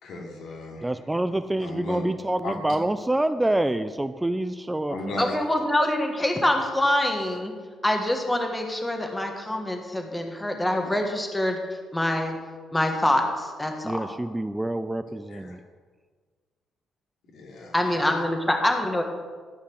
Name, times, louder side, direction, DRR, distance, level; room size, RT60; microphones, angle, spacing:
voice 1, 0.0-0.9 1.6-2.0 2.4-2.5 4.9-5.3 15.3-15.5 17.3-18.2, left 2 dB, 75° left, -1 dB, 2.7 m, -36 dB
voice 2, 0.8-5.4 13.8-15.6, right 1 dB, 10° right, 12 dB, 0.4 m, -27 dB
voice 3, 5.2-7.5 7.8-11.6 11.9-12.4 12.7-14.1 17.7-19.0, left 1 dB, 10° left, 4 dB, 1.5 m, -25 dB
13.0 x 5.7 x 6.3 m, 1.5 s
cardioid pair, 90°, 0 cm